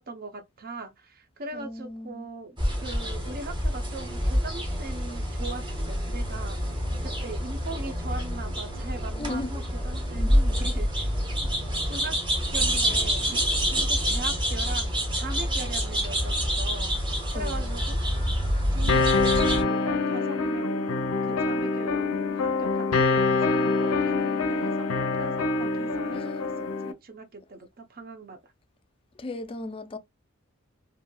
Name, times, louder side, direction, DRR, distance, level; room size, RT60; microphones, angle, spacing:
voice 1, 0.0-6.6 7.0-11.5 11.9-12.2 12.5-16.9 17.3-18.0 18.7-20.9 21.2-28.5, right 2 dB, 45° right, 0.7 m, -40 dB
voice 2, 1.5-2.3 9.2-9.5 10.1-10.4 17.3-17.8 26.1-26.4 29.2-30.0, left 2 dB, 25° left, 0.4 m, -36 dB
sound 1, 2.6-19.6, equal, 20° right, 1.1 m, -27 dB
sound 2, 18.9-26.9, left 3 dB, 90° left, 0.6 m, -25 dB
3.0 x 2.7 x 2.2 m
head